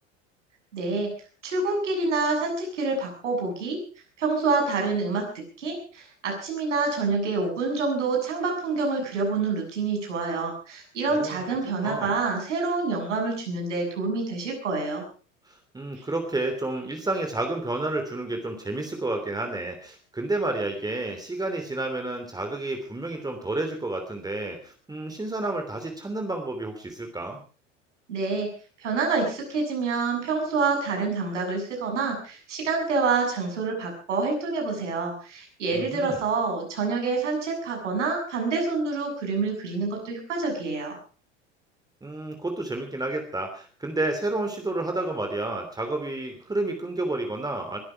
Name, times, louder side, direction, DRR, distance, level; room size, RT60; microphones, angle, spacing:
voice 1, 0.7-1.1 1.4-3.8 4.2-15.0 16.0-16.1 28.1-28.5 28.8-41.0, right 4 dB, 70° right, 2 dB, 7.3 m, -27 dB
voice 2, 11.6-12.2 15.5-27.4 35.7-36.2 42.0-47.8, right 2 dB, 10° right, 4 dB, 3.1 m, -30 dB
21.5 x 13.5 x 4.9 m, 0.39 s
figure-of-eight pair, 75°, 37 cm